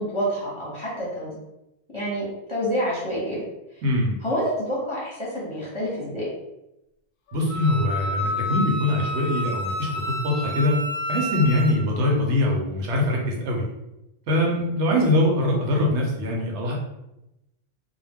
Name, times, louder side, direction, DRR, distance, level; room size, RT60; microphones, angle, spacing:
voice 1, 0.0-1.4 1.9-3.4 3.7-3.8 4.2-6.3, equal, 30° left, -7 dB, 0.7 m, -28 dB
voice 2, 3.8-4.2 7.3-10.8 11.1-13.7 14.3-16.7, left 1 dB, 80° right, -1 dB, 0.9 m, -23 dB
Wind instrument woodwind instrument, 7.5-11.8, equal, 60° left, 0.6 m, -29 dB
2.2 x 2.1 x 3.4 m, 0.90 s
omnidirectional pair, 1.2 m